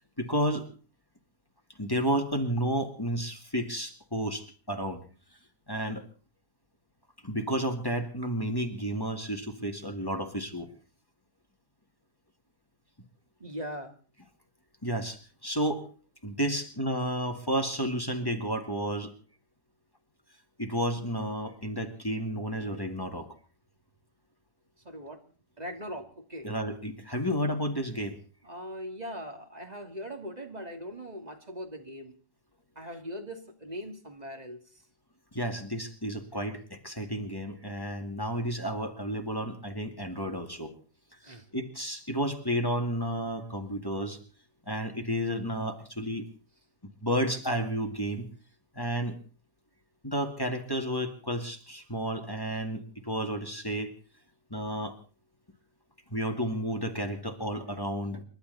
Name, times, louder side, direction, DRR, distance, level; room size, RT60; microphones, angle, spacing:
voice 1, 0.2-0.7 1.8-5.0 5.7-6.0 7.2-10.7 14.8-15.9 16.2-19.1 20.6-23.3 26.4-28.2 35.3-40.7 41.5-44.2 44.7-46.2 47.0-48.2 48.8-49.1 50.0-53.9 54.5-54.9 56.1-58.2, equal, 15° left, 5 dB, 2.1 m, -31 dB
voice 2, 13.4-13.9 24.8-25.2 25.6-26.5 28.4-32.1 32.8-34.6 41.2-41.4, equal, 25° right, 4 dB, 2.6 m, -40 dB
29.0 x 12.0 x 4.1 m, 0.40 s
omnidirectional pair, 1.8 m